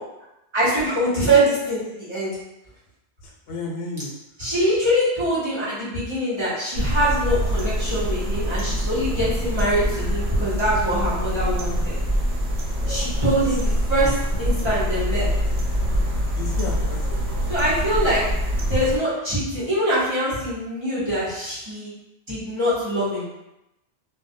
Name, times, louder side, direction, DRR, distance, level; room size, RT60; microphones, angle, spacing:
voice 1, 0.5-2.3 4.4-12.0 12.9-15.3 17.5-18.2 18.7-21.9 22.3-23.3, right 1 dB, 30° right, -11 dB, 0.8 m, -23 dB
voice 2, 3.2-4.1 13.4-13.6 16.4-17.4, left 2 dB, 85° left, 0 dB, 0.9 m, -33 dB
sound 1, 6.7-19.0, equal, 75° right, 0.9 m, -24 dB
2.2 x 2.1 x 2.6 m, 0.90 s
omnidirectional pair, 1.1 m